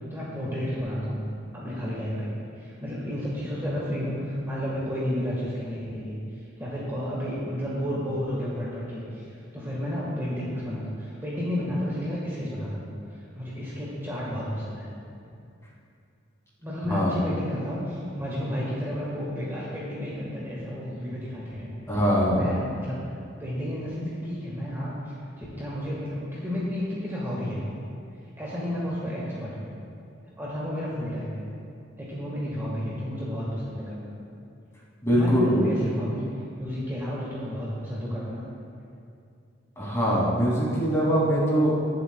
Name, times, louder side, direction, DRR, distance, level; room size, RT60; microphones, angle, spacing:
voice 1, 0.1-1.2 1.5-2.3 2.6-9.3 9.5-12.9 13.3-14.9 16.6-21.7 22.3-23.0 23.4-27.6 28.4-29.7 30.4-31.4 32.0-34.1 35.1-36.2 36.5-38.5, equal, 15° right, -7 dB, 1.6 m, -31 dB
voice 2, 21.9-22.6 35.0-35.7 39.8-41.8, equal, 15° left, -6 dB, 2.5 m, -22 dB
22.5 x 7.5 x 2.3 m, 2.5 s
head